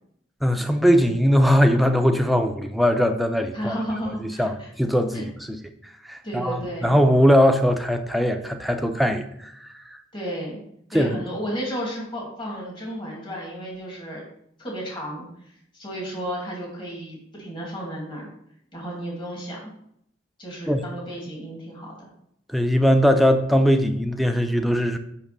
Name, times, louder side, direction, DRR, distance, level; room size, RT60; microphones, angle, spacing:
voice 1, 0.4-3.7 4.4-5.6 6.0-10.0 10.9-11.2 20.7-20.8 22.5-25.0, equal, ahead, 0.5 m, -20 dB
voice 2, 3.5-4.7 5.1-5.2 6.2-6.9 10.1-10.6 10.9-14.2 14.6-15.3 15.7-18.3 18.7-19.7 20.4-22.1, equal, 25° left, 2.5 m, -33 dB
5.8 x 5.6 x 6.7 m
head